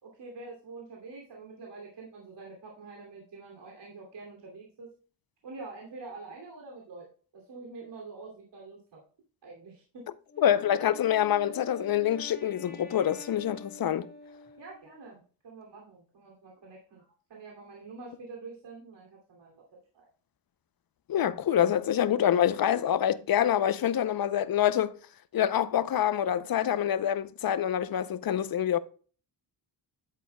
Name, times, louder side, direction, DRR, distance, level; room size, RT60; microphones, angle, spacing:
voice 1, 0.0-4.9 5.4-7.1 7.3-9.0 9.4-9.8 14.6-19.5 19.9-20.1, right 3 dB, 70° right, 2.8 m, -46 dB
Wind instrument woodwind instrument, 10.3-15.0, left 2 dB, 20° left, 1.8 m, -47 dB
voice 2, 10.4-14.1 21.1-25.0 25.3-28.8, left 10 dB, 55° left, 0.7 m, -26 dB
9.7 x 8.6 x 2.2 m
cardioid pair, 85°, 43 cm